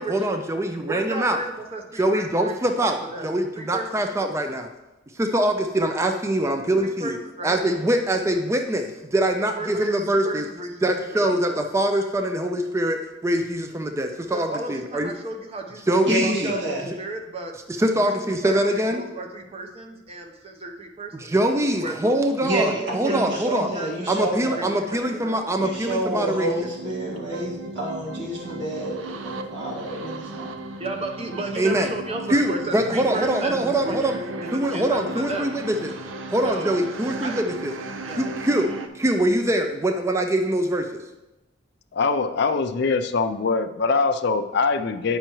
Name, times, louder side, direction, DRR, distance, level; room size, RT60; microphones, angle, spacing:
voice 1, 0.0-1.4 2.0-4.7 5.2-7.2 7.4-10.4 10.8-15.1 15.9-16.5 16.8-16.9 17.8-19.0 21.1-23.7 24.1-26.5 31.6-31.9 32.3-34.2 34.5-35.9 36.3-37.7 38.2-41.0, right 1 dB, 15° right, 5 dB, 0.4 m, -23 dB
voice 2, 0.8-2.6 3.1-3.3 3.5-4.1 6.7-7.6 9.4-11.4 14.3-15.9 16.2-17.5 17.9-22.0 22.6-24.3 24.5-25.4 26.3-26.5 27.3-27.5 30.8-35.5 36.4-36.8 37.2-37.3 38.0-38.3, right 2 dB, 30° right, 3 dB, 0.7 m, -34 dB
voice 3, 16.0-16.8 22.4-24.7 25.6-30.6, right 1 dB, 60° right, -4 dB, 1.7 m, -28 dB
sound 1, 25.6-38.9, right 2 dB, 80° right, 0.5 m, -36 dB
voice 4, 41.9-45.2, left 4 dB, 55° left, 9 dB, 0.4 m, -23 dB
8.8 x 5.5 x 3.0 m, 1.0 s
head